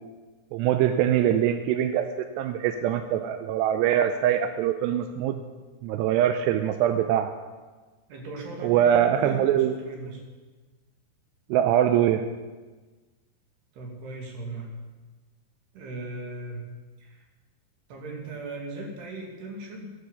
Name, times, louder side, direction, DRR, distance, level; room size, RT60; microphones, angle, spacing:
voice 1, 0.5-5.4 5.8-7.3 8.6-9.7 11.5-12.3, right 10 dB, 90° right, 7 dB, 2.8 m, -23 dB
voice 2, 8.1-10.2 13.7-14.7 15.7-16.6 17.0-17.2 17.9-19.9, right 2 dB, 70° right, 0 dB, 4.4 m, -38 dB
13.5 x 11.5 x 7.1 m, 1.3 s
omnidirectional pair, 4.8 m